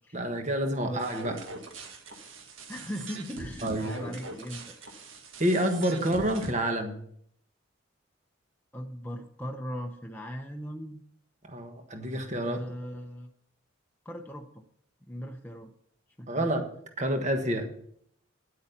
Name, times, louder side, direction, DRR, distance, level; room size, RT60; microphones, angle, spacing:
voice 1, 0.1-1.4 3.6-3.9 5.4-7.0 11.5-12.6 16.3-16.7 17.0-17.7, right 1 dB, 35° right, 5 dB, 1.4 m, -28 dB
sound 1, 1.0-6.5, right 2 dB, 80° right, 1.7 m, -42 dB
voice 2, 2.7-4.7 8.7-11.0 12.4-13.3 14.0-14.6 15.0-15.7 16.2-16.5, equal, 10° left, 2 dB, 0.6 m, -39 dB
10.0 x 8.4 x 5.7 m, 0.66 s
head